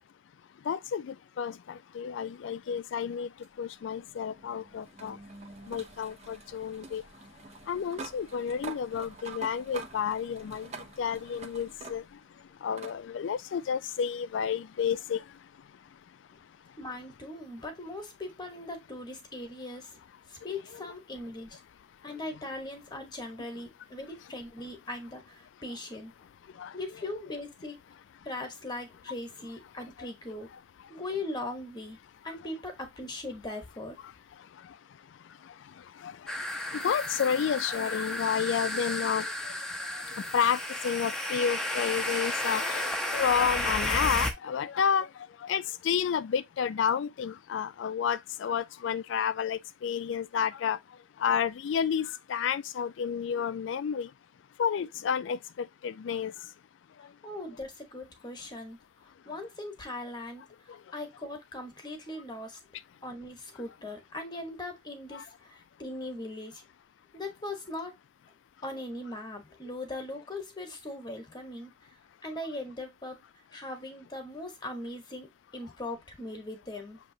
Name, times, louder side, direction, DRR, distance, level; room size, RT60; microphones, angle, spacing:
voice 1, 0.7-3.3 3.6-5.2 5.7-7.0 7.7-12.0 12.6-15.2 26.6-26.8 36.0-36.5 36.7-39.5 39.9-45.1 45.4-50.8 51.2-54.1 54.6-56.3 60.7-60.8 65.1-65.2, left 7 dB, 75° left, 0.3 m, -30 dB
sound 1, 3.4-12.3 12.8-13.0 14.3-14.4 17.3-17.4, right 3 dB, 35° right, 0.6 m, -46 dB
voice 2, 16.8-20.0 20.3-21.6 22.0-26.1 26.7-27.8 28.2-30.5 30.9-32.0 32.2-34.0 57.2-58.8 59.2-60.4 60.9-62.6 63.0-66.6 67.1-67.9 68.6-71.7 72.2-73.2 73.5-77.0, left 2 dB, 25° left, 1.1 m, -39 dB
sound 2, 36.3-44.3, left 1 dB, 5° left, 0.7 m, -32 dB
6.6 x 2.9 x 2.7 m
head